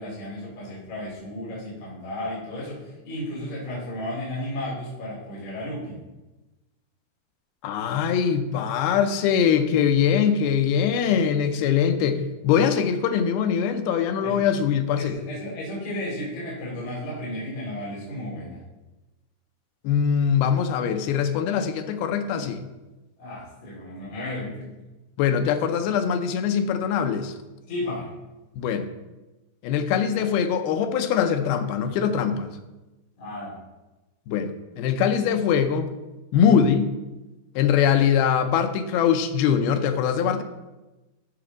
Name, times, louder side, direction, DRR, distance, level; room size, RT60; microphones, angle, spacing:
voice 1, 0.0-6.0 14.2-14.4 15.0-18.6 21.5-21.7 22.3-22.5 23.2-24.9 27.7-28.1 33.2-33.6, left 1 dB, 35° left, -7 dB, 3.0 m, -34 dB
voice 2, 7.6-15.2 19.8-22.6 25.2-27.3 28.6-28.9 29.6-32.6 34.3-35.9 36.3-36.9 37.6-40.4, left 7 dB, 80° left, 7 dB, 2.6 m, -22 dB
13.0 x 6.0 x 3.9 m, 1.1 s
omnidirectional pair, 4.4 m